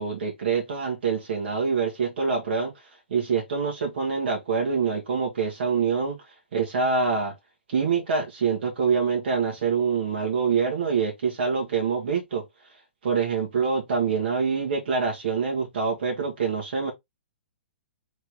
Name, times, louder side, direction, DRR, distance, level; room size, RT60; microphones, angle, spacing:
voice 1, 0.0-2.7 3.1-6.2 6.5-7.3 7.7-12.4 13.0-16.9, right 5 dB, 60° right, 1.6 m, -25 dB
3.5 x 3.3 x 3.5 m
figure-of-eight pair, 120°, 7 cm